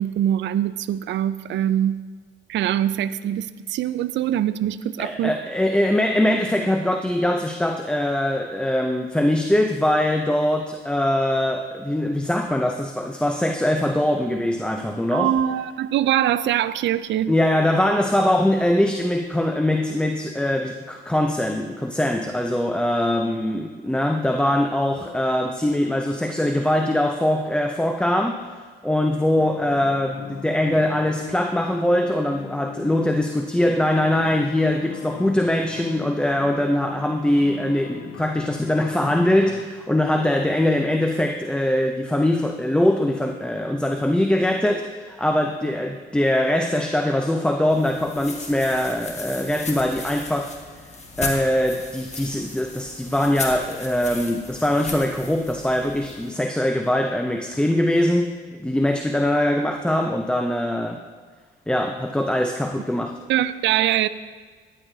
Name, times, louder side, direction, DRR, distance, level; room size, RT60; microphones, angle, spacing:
voice 1, 0.0-2.0 2.5-5.3 15.1-17.3 63.3-64.1, right 11 dB, 65° right, 0.4 m, -23 dB
voice 2, 5.0-15.3 17.3-28.4 28.8-50.5 51.2-61.0 61.7-63.2, left 1 dB, 5° left, 0.5 m, -22 dB
sound 1, 29.4-39.6, left 11 dB, 75° left, 0.5 m, -40 dB
sound 2, 47.7-56.3, left 3 dB, 35° left, 1.5 m, -36 dB
12.5 x 10.0 x 2.7 m
cardioid pair, 90°, 20 cm